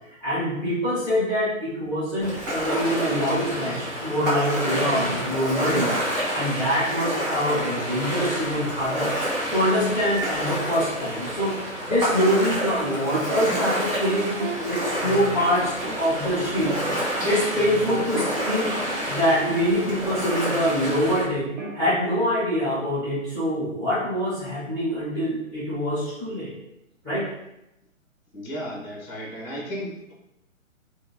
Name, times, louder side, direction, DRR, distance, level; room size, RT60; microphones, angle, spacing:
voice 1, 0.2-6.0 6.3-9.1 9.5-11.5 11.9-16.7 17.0-18.7 19.1-21.4 21.7-26.5 27.0-27.3, equal, 5° left, -15 dB, 1.5 m, -24 dB
Ocean, 2.2-21.2, equal, 20° right, 0.9 m, -29 dB
sound 1, 12.8-14.6 15.0-16.2 16.9-17.3 17.5-21.0 21.3-22.1, right 5 dB, 60° right, 0.9 m, -36 dB
voice 2, 28.3-30.1, equal, 25° left, -3 dB, 0.8 m, -34 dB
3.8 x 2.2 x 2.6 m, 0.87 s
figure-of-eight pair, 135°, 40 cm